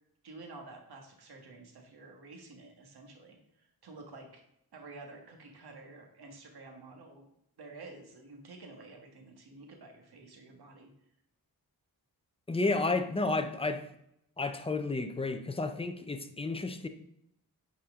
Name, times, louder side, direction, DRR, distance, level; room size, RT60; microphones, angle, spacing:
voice 1, 0.2-4.4 4.7-7.3 7.6-10.9, right 3 dB, 90° right, 1.6 m, -50 dB
voice 2, 12.5-13.8 14.4-16.9, left 3 dB, 15° left, 0.6 m, -31 dB
9.4 x 4.5 x 3.7 m
wide cardioid pair, 130°, 37 cm